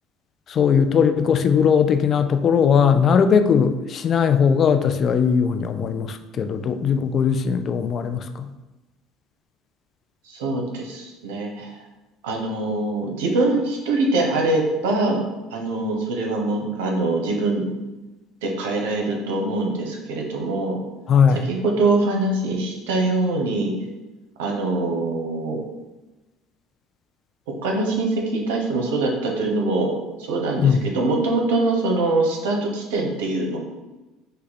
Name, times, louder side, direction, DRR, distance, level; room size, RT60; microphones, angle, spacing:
voice 1, 0.5-8.5 21.1-21.5 30.6-30.9, left 7 dB, 45° left, 10 dB, 0.3 m, -19 dB
voice 2, 10.2-11.8 12.2-15.2 15.5-17.7 18.4-20.8 21.3-23.7 24.4-25.6 27.6-29.9 30.2-33.6, right 2 dB, 90° right, 1 dB, 0.9 m, -23 dB
5.4 x 2.3 x 4.0 m, 1.1 s
supercardioid pair, 90°, 0 cm